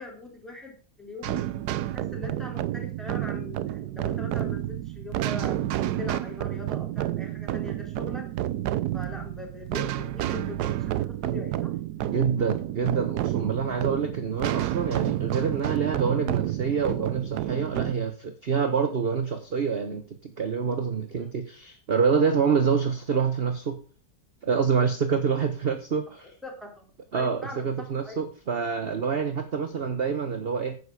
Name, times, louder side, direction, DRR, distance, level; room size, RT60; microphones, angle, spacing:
voice 1, 0.0-1.4 1.7-5.6 6.0-8.3 8.9-11.7 21.1-21.4 26.4-28.2, left 2 dB, ahead, 2 dB, 3.8 m, -41 dB
sound 1, 1.2-17.9, right 13 dB, 70° right, 1.2 m, -30 dB
voice 2, 12.1-23.8 24.4-26.3 27.1-30.8, right 6 dB, 40° right, 8 dB, 1.1 m, -26 dB
10.0 x 8.3 x 4.9 m, 0.39 s
omnidirectional pair, 1.9 m